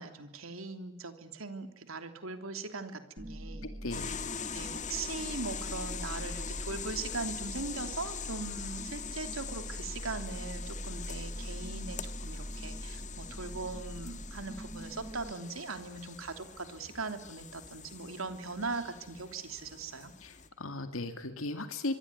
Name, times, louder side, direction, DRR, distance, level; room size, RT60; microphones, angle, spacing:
voice 1, 0.0-3.7 4.5-20.1, right 3 dB, 85° right, 8 dB, 3.1 m, -40 dB
sound 1, 3.2-15.3, equal, 15° right, 0.9 m, -43 dB
voice 2, 3.8-4.2 20.2-22.0, left 2 dB, 90° left, 8 dB, 2.4 m, -37 dB
sound 2, 3.9-20.5, left 7 dB, 35° left, 1.8 m, -43 dB
25.5 x 23.0 x 9.7 m, 0.90 s
head